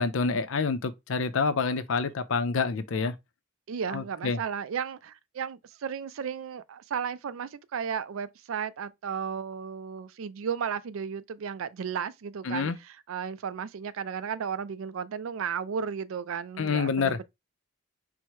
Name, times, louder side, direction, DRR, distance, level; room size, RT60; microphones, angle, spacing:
voice 1, 0.0-3.1 3.9-4.4 12.5-12.8 16.6-17.2, left 4 dB, 70° left, 0.5 m, -27 dB
voice 2, 3.7-17.2, right 7 dB, 75° right, 0.4 m, -34 dB
4.6 x 2.1 x 4.5 m
head